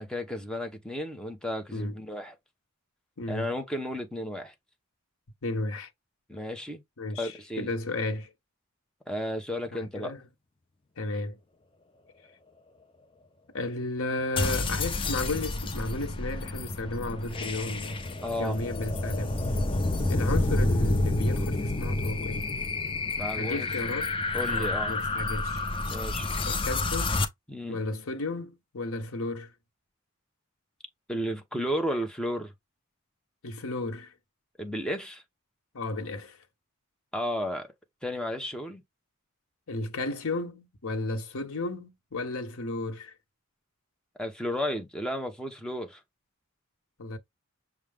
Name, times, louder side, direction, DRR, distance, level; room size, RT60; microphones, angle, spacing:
voice 1, 0.0-2.4 3.3-4.5 6.3-6.8 7.2-7.7 9.1-10.1 18.2-18.6 23.2-23.7 24.3-25.0 25.8-26.3 27.5-27.8 31.1-32.5 34.6-35.2 37.1-37.7 38.0-38.8 44.2-46.0, equal, 5° left, 0.9 m, -33 dB
voice 2, 3.2-3.5 5.4-5.9 7.0-8.3 9.7-10.2 11.0-11.4 13.5-18.0 18.4-19.4 20.0-22.5 23.4-24.1 24.5-25.6 26.5-27.1 27.7-29.5 33.4-34.1 35.7-36.4 39.7-43.1 47.0-47.2, left 2 dB, 75° left, 1.0 m, -33 dB
sound 1, 14.4-27.3, left 2 dB, 25° left, 0.6 m, -29 dB
6.3 x 2.3 x 3.5 m
head